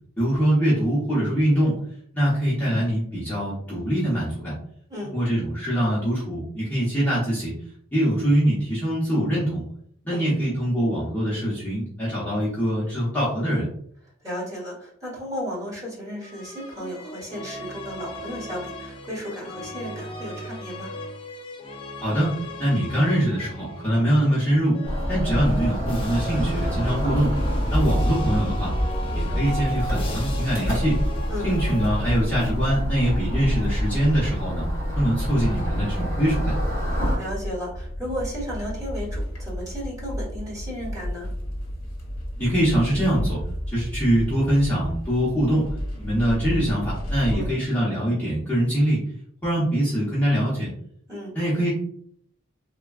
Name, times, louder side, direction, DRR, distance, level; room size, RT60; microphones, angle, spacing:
voice 1, 0.2-1.8 2.1-4.5 5.0-7.5 7.9-9.6 10.0-13.7 22.0-22.3 22.6-24.8 25.1-27.3 27.7-28.7 29.1-31.0 31.4-34.7 34.9-36.6 42.4-43.4 43.7-45.7 46.0-49.0 49.4-50.7 51.3-51.7, equal, 10° left, -10 dB, 0.8 m, -23 dB
voice 2, 14.2-20.9 26.8-27.0 31.3-31.5 37.2-41.3 47.3-47.5 51.1-51.3, equal, 15° right, -6 dB, 1.4 m, -34 dB
sound 1, 16.2-24.1 24.7-32.6, equal, 25° left, 0.4 m, -36 dB
sound 2, 24.8-37.2, equal, 45° right, 1.4 m, -26 dB
sound 3, 28.0-47.5, equal, 65° left, 0.9 m, -33 dB
3.3 x 2.2 x 2.3 m, 0.66 s
head